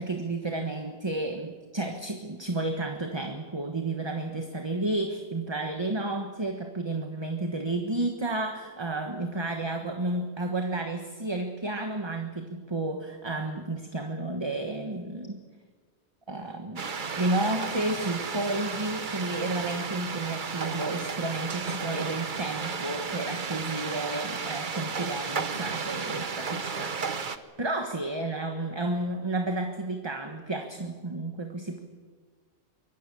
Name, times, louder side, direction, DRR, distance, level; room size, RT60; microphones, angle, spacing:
voice 1, 0.0-15.4 16.3-16.9 17.2-27.0 27.3-31.8, right 2 dB, 25° right, 5 dB, 1.4 m, -32 dB
sound 1, 16.8-27.4, right 5 dB, 50° right, 1.1 m, -33 dB
24.5 x 21.0 x 6.9 m, 1.5 s
omnidirectional pair, 1.1 m